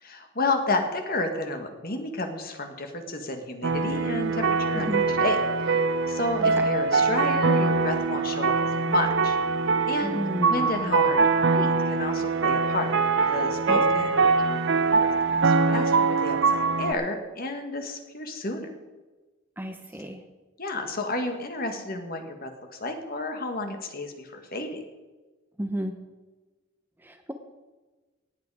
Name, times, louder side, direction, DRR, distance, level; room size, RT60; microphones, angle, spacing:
voice 1, 0.0-4.9 5.2-5.8 6.1-9.4 9.9-10.2 10.5-11.2 11.5-12.9 13.2-14.6 15.0-18.7 20.6-24.8, left 2 dB, 45° left, 5 dB, 1.7 m, -31 dB
sound 1, 3.6-16.9, right 4 dB, 60° right, 0.7 m, -23 dB
voice 2, 4.7-5.0 6.4-6.7 10.0-10.7 13.7-13.8 19.6-20.3 25.6-26.0 27.0-27.3, right 1 dB, 10° right, 6 dB, 0.8 m, -32 dB
18.0 x 8.5 x 4.9 m, 1.2 s
head